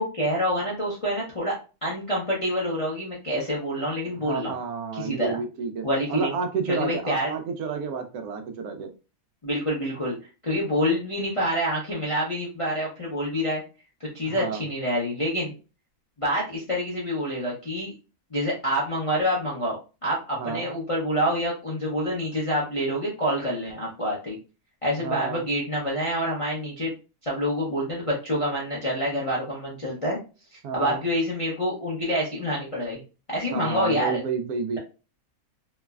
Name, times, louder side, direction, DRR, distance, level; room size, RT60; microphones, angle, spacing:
voice 1, 0.0-1.5 1.8-4.5 4.9-5.4 5.8-6.3 6.7-7.3 9.4-10.2 10.4-13.6 14.1-15.5 16.2-17.9 18.3-19.8 20.0-24.4 24.8-26.9 27.2-30.2 30.7-33.0 33.3-34.2, equal, 40° left, -6 dB, 0.4 m, -27 dB
voice 2, 4.2-8.9 14.2-14.6 20.4-20.7 25.0-25.4 30.6-31.0 33.5-34.8, right 5 dB, 85° right, 7 dB, 1.1 m, -30 dB
3.1 x 2.0 x 2.3 m, 0.32 s
omnidirectional pair, 1.6 m